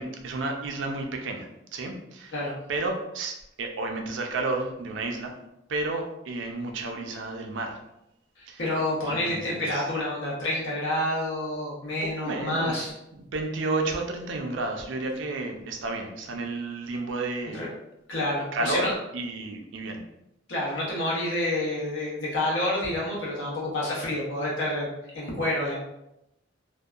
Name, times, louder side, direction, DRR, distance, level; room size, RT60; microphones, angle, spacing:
voice 1, 0.0-2.3 2.7-5.3 5.7-7.8 8.5-8.6 9.1-9.8 12.0-12.9 13.1-17.6 18.5-20.0, right 2 dB, 80° right, 3 dB, 0.4 m, -31 dB
voice 2, 8.4-12.9 17.5-17.7 18.1-18.9 20.5-24.9 25.1-25.7, left 1 dB, 85° left, -5 dB, 1.0 m, -28 dB
2.6 x 2.2 x 2.3 m, 0.85 s
head